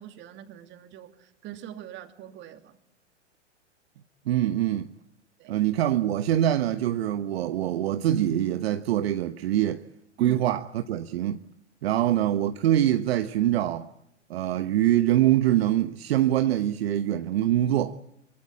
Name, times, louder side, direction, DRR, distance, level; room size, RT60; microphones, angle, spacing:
voice 1, 0.0-2.8 5.4-5.5 10.2-10.4 11.9-12.0, right 10 dB, 30° right, 2.7 m, -42 dB
voice 2, 4.3-4.9 5.5-9.8 10.2-11.4 11.8-13.9 14.3-18.0, right 12 dB, 60° right, 1.1 m, -24 dB
24.0 x 23.5 x 8.4 m
hypercardioid pair, 110°, 35 cm